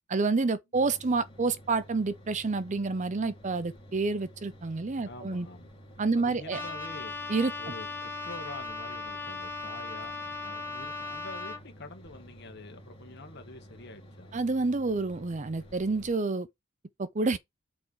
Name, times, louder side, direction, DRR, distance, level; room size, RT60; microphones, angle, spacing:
voice 1, 0.1-5.5 6.0-6.6 7.3-7.5 14.3-16.5 17.0-17.4, right 3 dB, 35° right, 0.6 m, -28 dB
sound 1, 0.7-16.1, equal, 30° left, 2.6 m, -51 dB
voice 2, 5.0-5.7 6.1-7.1 7.6-14.4, left 2 dB, 55° left, 1.8 m, -46 dB
Trumpet, 6.5-11.6, left 4 dB, 10° left, 2.0 m, -37 dB
6.3 x 4.7 x 4.7 m
head